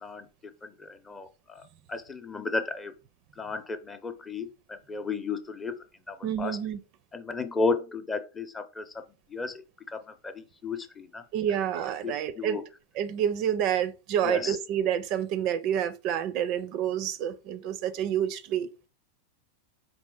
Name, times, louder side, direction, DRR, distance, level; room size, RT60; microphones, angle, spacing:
voice 1, 0.6-1.6 1.9-2.9 3.4-5.8 6.1-6.6 7.1-8.9 9.3-9.6 9.9-10.0 10.2-11.2 12.0-12.6 14.2-14.6, left 4 dB, 20° left, 0.6 m, -33 dB
voice 2, 6.2-6.8 11.3-12.6 12.9-18.7, right 9 dB, 50° right, 0.4 m, -28 dB
4.1 x 3.0 x 3.8 m
hypercardioid pair, 110°, 0 cm